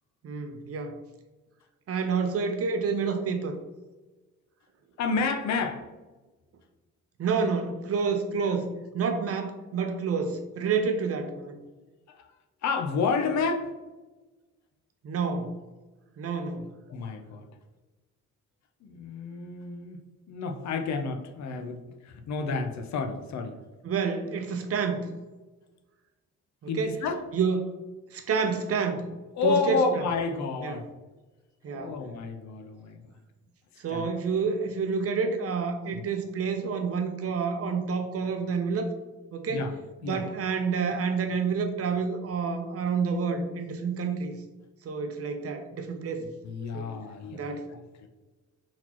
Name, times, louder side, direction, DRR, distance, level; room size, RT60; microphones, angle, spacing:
voice 1, 0.2-1.0 1.9-3.6 7.2-8.7 8.9-11.6 15.0-15.5 16.2-16.7 23.8-25.1 26.6-27.0 27.3-27.8 28.1-29.1 29.4-30.0 30.6-30.8 31.6-31.9 33.8-38.9 39.3-39.7 40.1-44.4 44.8-46.3 46.7-46.9 47.3-47.8, right 5 dB, 50° right, 7 dB, 0.7 m, -29 dB
voice 2, 5.0-5.9 12.1-12.3 12.6-13.7 16.9-17.5 18.8-20.0 20.3-23.6 26.7-27.2 29.3-30.9 31.7-33.1 33.9-34.1 35.9-36.0 39.5-39.7 40.0-40.2 46.2-48.1, left 4 dB, 65° left, 6 dB, 0.6 m, -30 dB
4.3 x 4.0 x 2.9 m, 1.2 s
cardioid pair, 90°, 30 cm